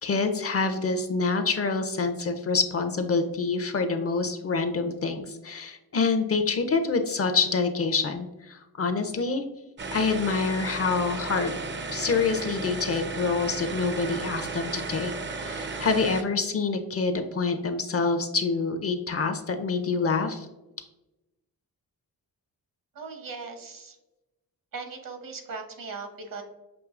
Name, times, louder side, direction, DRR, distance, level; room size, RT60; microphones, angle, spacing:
voice 1, 0.0-9.4 9.9-11.5 11.9-15.1 15.4-20.5, left 4 dB, 40° left, 8 dB, 0.4 m, -26 dB
sound 1, 9.8-16.2, right 4 dB, 30° right, 0.4 m, -34 dB
voice 2, 22.9-24.0 24.7-26.4, right 4 dB, 60° right, 4 dB, 0.9 m, -38 dB
6.1 x 2.7 x 2.4 m, 0.99 s
cardioid pair, 80°, 37 cm